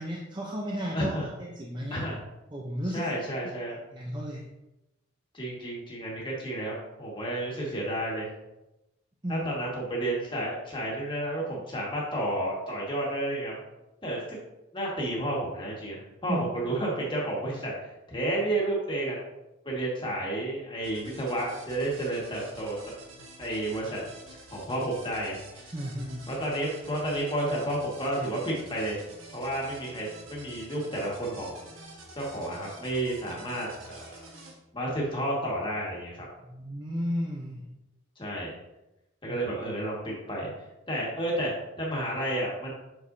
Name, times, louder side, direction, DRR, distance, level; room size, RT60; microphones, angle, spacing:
voice 1, 0.0-2.0 2.5-3.1 3.9-4.4 9.2-9.5 16.3-16.6 25.7-26.3 36.4-37.7 39.3-39.4, equal, 20° right, -2 dB, 0.7 m, -33 dB
voice 2, 0.9-1.3 1.9-2.2 2.9-3.8 5.3-8.3 9.3-13.5 14.0-14.4 14.7-19.2 19.7-22.8 23.4-24.0 24.3-25.7 26.3-29.0 29.3-31.7 32.2-34.2 34.7-36.3 38.2-38.5 39.2-40.5 40.9-41.5 41.8-42.7, right 1 dB, 25° left, -3 dB, 1.8 m, -31 dB
sound 1, 20.8-34.5, right 2 dB, 80° right, 1.4 m, -49 dB
7.8 x 6.3 x 2.7 m, 0.96 s
head